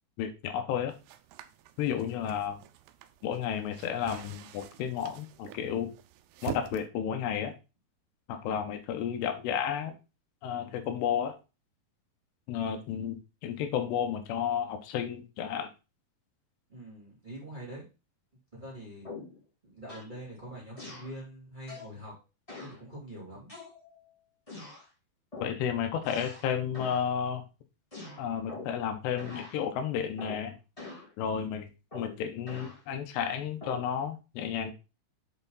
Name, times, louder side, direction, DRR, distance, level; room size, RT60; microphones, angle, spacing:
voice 1, 0.2-0.9 1.8-2.6 3.2-5.9 6.4-7.5 8.3-10.0 10.4-11.4 12.5-15.7 25.4-27.4 28.2-30.6 31.2-34.7, left 8 dB, 90° left, 7 dB, 3.1 m, -32 dB
sound 1, 0.9-6.9, right 13 dB, 85° right, 2.7 m, -46 dB
voice 2, 16.7-17.9 18.5-19.1 19.6-22.1 22.6-23.5, right 1 dB, 15° right, -4 dB, 2.5 m, -44 dB
sound 2, 19.0-19.4 19.9-20.1 20.8-21.1 21.7-21.9 22.5-22.8 23.5-24.0 24.5-24.8 25.3-25.6 26.0-26.5 26.7-27.1 27.9-28.8 29.2-29.6 30.2-30.5 30.8-31.1 31.9-32.8 33.6-33.9, left 3 dB, 15° left, 1.1 m, -44 dB
8.0 x 4.5 x 4.0 m, 0.29 s
omnidirectional pair, 4.7 m